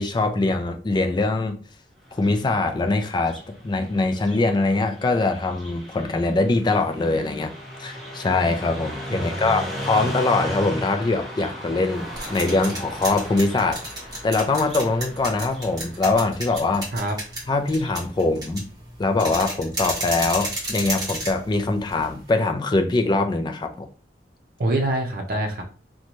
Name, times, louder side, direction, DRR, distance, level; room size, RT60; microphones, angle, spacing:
voice 1, 0.0-1.6 2.1-7.5 7.8-13.8 14.2-16.9 17.5-18.7 19.0-23.9, left 3 dB, 25° left, 0.3 m, -23 dB
Car passing by, 2.1-18.0, equal, ahead, 0.7 m, -37 dB
voice 2, 9.1-10.1 16.9-17.2 24.6-25.6, right 1 dB, 55° right, 0.6 m, -26 dB
sound 1, 11.9-22.3, right 1 dB, 20° right, 1.1 m, -33 dB
2.6 x 2.2 x 2.9 m
head